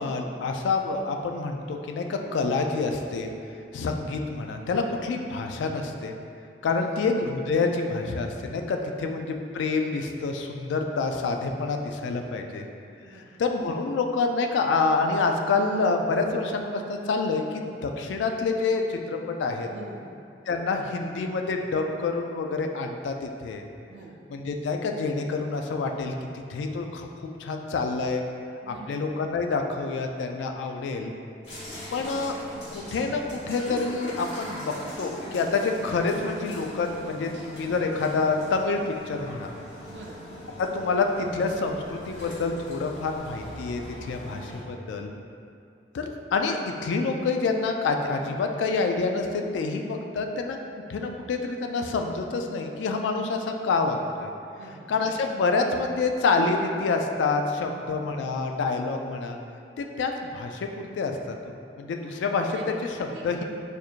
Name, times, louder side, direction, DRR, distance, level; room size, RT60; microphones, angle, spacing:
voice 1, 0.0-3.3 3.7-6.1 6.6-12.7 13.1-19.7 20.5-23.7 24.3-26.1 26.5-28.2 28.7-31.1 31.9-32.3 32.7-39.5 40.6-45.1 45.9-50.6 50.9-54.3 54.9-59.4 59.8-63.4, left 4 dB, 85° left, 4 dB, 0.3 m, -27 dB
voice 2, 6.6-7.0 8.9-9.0 13.0-13.3 19.7-20.1 23.9-24.2 28.6-29.0 39.9-40.2 54.5-54.8 57.6-58.3 62.5-62.6 63.1-63.2, right 3 dB, 85° right, -1 dB, 0.4 m, -45 dB
sound 1, 31.4-44.6, equal, 65° left, 1.4 m, -41 dB
4.4 x 2.5 x 2.4 m, 2.5 s
head